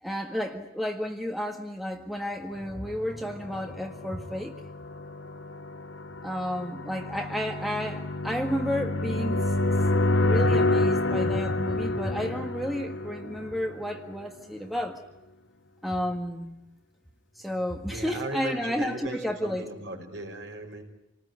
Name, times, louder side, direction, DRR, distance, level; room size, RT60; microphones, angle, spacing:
voice 1, 0.0-4.6 6.2-9.5 10.0-15.0 15.8-16.6 17.4-19.7, equal, ahead, 2 dB, 1.7 m, -32 dB
sound 1, 3.3-14.1, left 2 dB, 65° left, 1.1 m, -28 dB
voice 2, 17.9-20.8, right 1 dB, 60° right, 3 dB, 5.6 m, -37 dB
28.0 x 19.5 x 9.7 m, 0.92 s
head